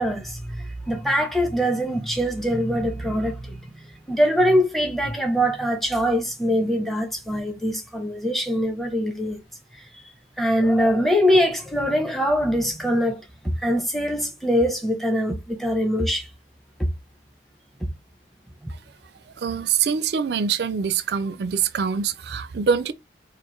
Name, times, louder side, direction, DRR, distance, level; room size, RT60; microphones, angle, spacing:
voice 1, 0.0-9.4 10.4-16.3 18.6-18.7, equal, ahead, 0.7 m, -23 dB
voice 2, 19.4-22.9, right 6 dB, 65° right, 0.4 m, -24 dB
4.4 x 2.5 x 3.1 m
head